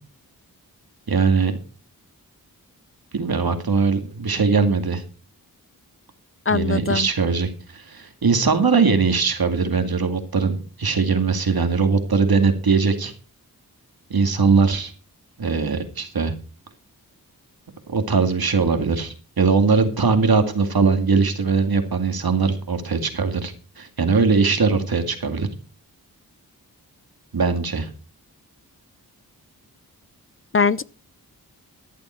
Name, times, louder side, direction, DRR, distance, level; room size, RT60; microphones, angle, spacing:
voice 1, 1.1-1.6 3.1-5.0 6.5-13.1 14.1-14.9 15.4-16.3 17.9-25.5 27.3-27.9, right 4 dB, 70° right, 2.3 m, -20 dB
voice 2, 6.5-7.1 30.5-30.8, left 5 dB, 35° left, 0.5 m, -21 dB
14.0 x 10.5 x 4.4 m
wide cardioid pair, 65°, 37 cm